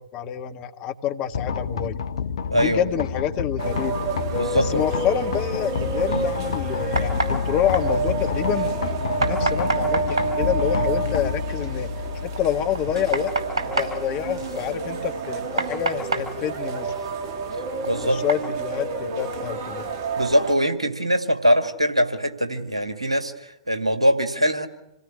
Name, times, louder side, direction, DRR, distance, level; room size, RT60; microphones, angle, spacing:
voice 1, 0.0-2.0 2.5-3.9 4.5-11.9 12.2-13.3 13.8-16.9 18.0-19.9, left 9 dB, 30° left, 8 dB, 1.6 m, -27 dB
sound 1, 1.3-15.2, left 7 dB, 60° left, 0.8 m, -29 dB
voice 2, 2.5-2.9 4.3-4.8 6.1-6.3 17.8-18.2 20.2-24.7, equal, 85° right, 7 dB, 2.0 m, -22 dB
sound 2, 3.6-20.6, right 4 dB, 45° right, 2.3 m, -29 dB
sound 3, 5.7-18.5, right 2 dB, 65° right, 4.7 m, -32 dB
27.5 x 17.5 x 9.9 m, 0.88 s
figure-of-eight pair, 105°, 3 cm